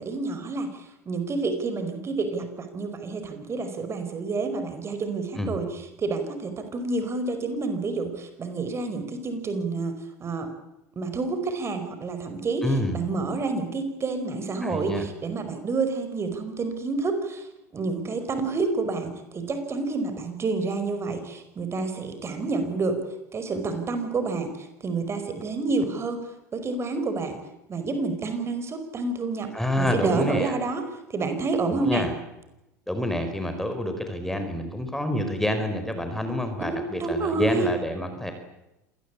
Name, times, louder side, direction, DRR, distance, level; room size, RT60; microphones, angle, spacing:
voice 1, 0.0-10.5 10.9-17.5 17.7-23.0 23.3-26.2 26.5-27.4 27.7-30.8 31.1-32.1 36.6-37.6, right 3 dB, 30° right, 9 dB, 5.1 m, -29 dB
voice 2, 12.6-13.0 14.6-15.0 29.5-30.5 31.7-32.1 32.9-38.3, left 1 dB, 5° left, 7 dB, 4.8 m, -28 dB
27.0 x 19.0 x 8.4 m, 0.90 s
hypercardioid pair, 85°, 9 cm